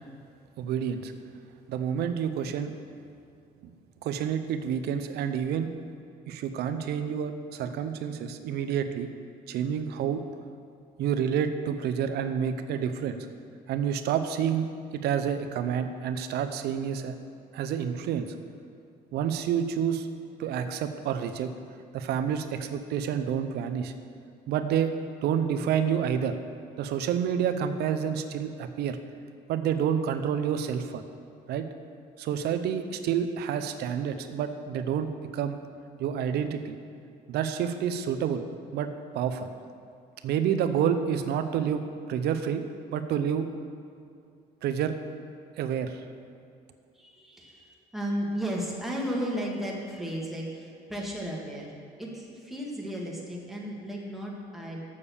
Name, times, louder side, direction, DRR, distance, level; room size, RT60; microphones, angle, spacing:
voice 1, 0.6-1.1 1.7-2.7 4.0-5.7 6.3-9.1 9.5-10.2 11.0-13.3 13.7-14.7 15.0-17.1 17.5-18.3 19.1-20.1 20.4-21.5 21.9-23.9 24.5-24.9 25.2-26.4 26.8-29.0 29.5-31.0 31.5-31.6 32.2-35.6 36.0-36.8 37.3-38.4 38.7-39.5 40.2-41.8 42.1-42.6 42.9-43.5 44.6-45.0 45.6-46.0, right 8 dB, 75° right, 9 dB, 0.7 m, -28 dB
voice 2, 46.9-54.8, equal, ahead, -3 dB, 1.8 m, -34 dB
7.0 x 6.6 x 7.1 m, 2.5 s
cardioid pair, 110°, 17 cm